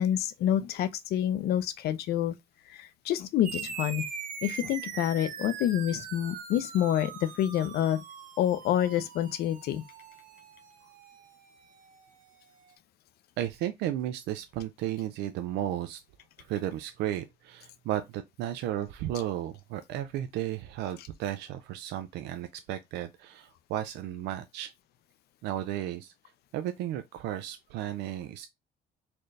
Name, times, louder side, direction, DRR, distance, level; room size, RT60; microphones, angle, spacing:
voice 1, 0.0-2.3 2.7-4.0 4.4-8.0 8.4-9.8, left 11 dB, 70° left, 0.6 m, -28 dB
sound 1, 3.4-12.3, right 7 dB, 50° right, 0.9 m, -42 dB
voice 2, 13.4-16.0 16.4-24.7 25.4-26.1 26.5-28.5, right 12 dB, 85° right, 0.5 m, -34 dB
4.3 x 2.5 x 3.2 m
cardioid pair, 110°, 17 cm